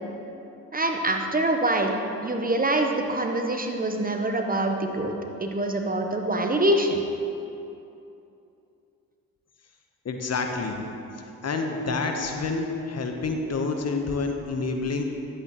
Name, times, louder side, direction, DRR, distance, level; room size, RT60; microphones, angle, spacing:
voice 1, 0.7-5.1 5.4-7.0, right 1 dB, 20° right, 4 dB, 0.8 m, -25 dB
voice 2, 10.0-10.8 11.2-15.1, left 3 dB, 40° left, 4 dB, 1.0 m, -28 dB
10.5 x 8.1 x 3.0 m, 2.8 s
hypercardioid pair, 50°, 39 cm